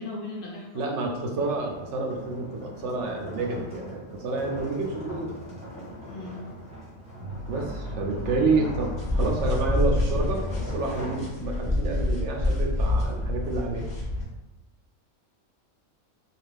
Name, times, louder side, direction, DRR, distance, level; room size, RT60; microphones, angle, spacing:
voice 1, 0.0-0.9 6.1-6.4, left 2 dB, 55° left, -3 dB, 0.7 m, -37 dB
voice 2, 0.7-5.3 7.5-8.9 9.2-10.4 10.7-13.9, right 3 dB, 65° right, 1 dB, 0.8 m, -29 dB
sound 1, 0.9-11.9, equal, 5° right, 0.8 m, -41 dB
sound 2, 5.0-13.5, left 2 dB, 90° right, 1.1 m, -39 dB
sound 3, 9.0-14.3, left 1 dB, 25° left, 0.9 m, -27 dB
2.4 x 2.4 x 3.2 m, 1.0 s
omnidirectional pair, 1.4 m